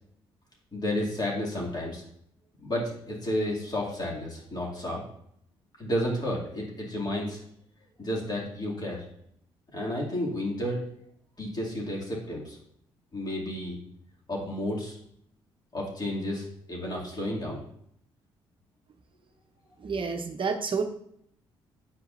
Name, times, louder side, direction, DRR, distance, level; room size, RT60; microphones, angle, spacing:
voice 1, 0.7-2.0 2.6-5.0 5.8-7.4 8.0-9.0 9.7-10.8 11.4-12.6 13.1-13.8 14.3-15.0 15.7-17.6, left 1 dB, 30° left, -3 dB, 2.4 m, -31 dB
voice 2, 19.8-20.8, right 5 dB, 40° right, 4 dB, 0.7 m, -29 dB
8.3 x 4.7 x 2.6 m, 0.70 s
hypercardioid pair, 45°, 13 cm